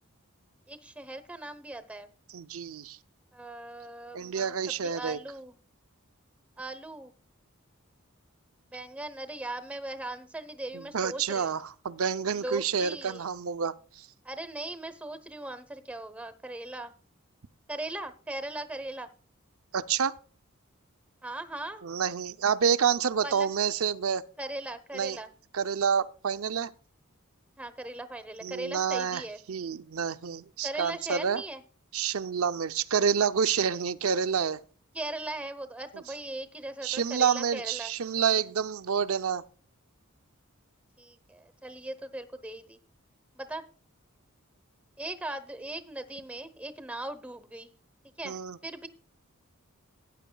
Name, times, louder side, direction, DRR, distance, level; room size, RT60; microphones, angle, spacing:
voice 1, 0.7-2.1 3.3-5.5 6.6-7.1 8.7-11.6 12.3-13.2 14.2-16.9 17.7-19.1 21.2-21.8 23.2-23.5 24.4-25.3 27.6-29.4 30.6-31.6 34.9-37.9 41.0-42.8 43.3-43.6 45.0-47.7 48.2-48.9, right 2 dB, 5° right, 0.9 m, -39 dB
voice 2, 2.3-3.0 4.1-5.2 10.7-14.1 19.7-20.2 21.8-24.2 24.9-25.2 25.5-26.7 28.4-31.4 31.9-34.6 36.8-39.4 48.2-48.6, right 7 dB, 75° right, 0.6 m, -28 dB
17.5 x 10.0 x 2.3 m
head